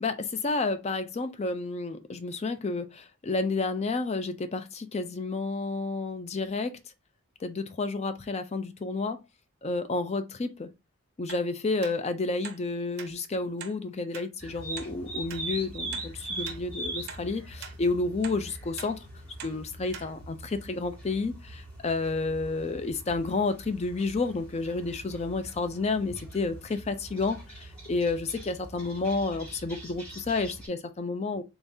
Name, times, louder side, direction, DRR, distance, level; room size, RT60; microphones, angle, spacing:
voice 1, 0.0-6.8 7.4-9.2 9.6-10.7 11.2-19.0 19.4-31.4, left 3 dB, 30° left, 0.4 m, -30 dB
sound 1, 11.3-11.5 11.8-12.0 12.4-12.6 13.0-13.1 13.6-13.8 14.1-14.3 14.8-14.9 15.3-15.4 15.9-16.1 16.5-16.6 17.1-17.2 17.6-17.8 18.2-18.4 18.8-18.9 19.4-19.6 19.9-20.1 20.5-20.6, right 7 dB, 50° right, 0.5 m, -42 dB
sound 2, 14.4-30.7, right 1 dB, 5° left, 2.0 m, -42 dB
3.7 x 3.5 x 2.7 m
head